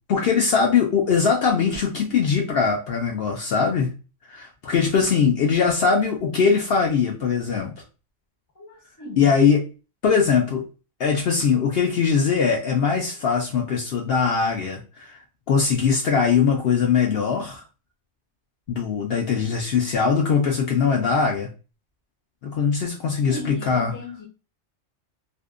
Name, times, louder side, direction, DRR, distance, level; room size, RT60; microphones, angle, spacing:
voice 1, 0.1-3.9 4.3-7.7 9.2-9.6 10.0-10.6 11.0-15.2 15.5-17.6 18.7-21.5 22.4-23.9, left 6 dB, 65° left, 0.7 m, -21 dB
voice 2, 8.5-9.3 23.2-24.3, left 2 dB, 25° left, 0.5 m, -37 dB
2.6 x 2.1 x 2.3 m
omnidirectional pair, 1.3 m